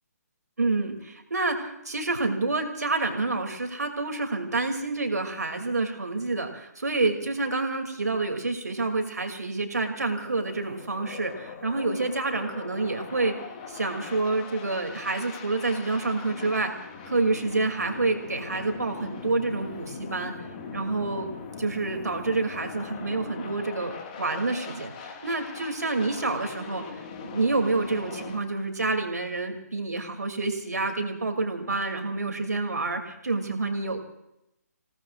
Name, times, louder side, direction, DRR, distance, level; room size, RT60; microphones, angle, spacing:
voice 1, 0.6-13.3 13.7-16.7 17.0-20.3 20.7-21.3 21.6-26.8 27.2-34.0, right 3 dB, 75° right, 5 dB, 2.8 m, -28 dB
sound 1, 10.0-28.4, left 5 dB, 30° left, 1.9 m, -41 dB
28.5 x 18.0 x 2.5 m, 0.85 s
figure-of-eight pair, 140°, 9 cm